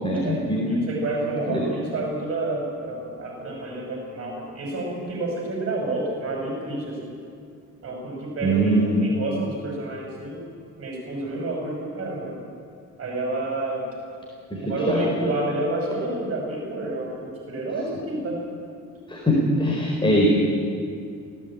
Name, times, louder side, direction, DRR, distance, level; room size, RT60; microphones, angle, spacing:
voice 1, 0.0-0.7 1.5-1.6 8.4-9.0 14.5-15.1 19.1-20.3, equal, 15° left, -2 dB, 4.4 m, -22 dB
voice 2, 0.7-7.1 7.8-10.5 10.8-12.3 13.0-13.8 14.6-18.4, right 2 dB, 50° right, -1 dB, 5.6 m, -29 dB
18.0 x 16.5 x 8.6 m, 2.3 s
cardioid pair, 90°, 30 cm